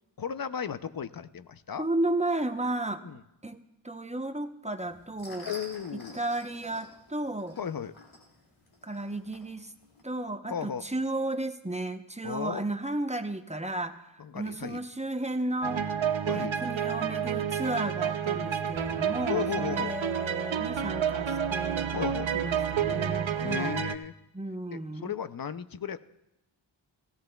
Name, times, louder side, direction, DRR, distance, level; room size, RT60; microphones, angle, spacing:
voice 1, 0.2-1.8 3.0-3.2 5.4-6.2 7.6-7.9 10.5-10.8 12.2-12.6 14.2-14.8 16.2-16.6 19.3-20.0 21.9-22.3 23.4-24.1 24.7-26.0, left 8 dB, 50° left, 14 dB, 0.5 m, -35 dB
voice 2, 1.8-3.0 3.4-3.6 3.8-5.5 5.9-7.6 8.8-9.7 10.0-15.8 16.3-21.9 22.3-23.9 24.3-25.1, right 1 dB, 15° right, 8 dB, 0.7 m, -33 dB
sound 1, 4.8-10.0, left 1 dB, 85° left, 2.5 m, -50 dB
sound 2, 15.6-23.9, right 8 dB, 75° right, 0.7 m, -30 dB
17.0 x 16.5 x 2.2 m, 0.90 s
wide cardioid pair, 40°, 47 cm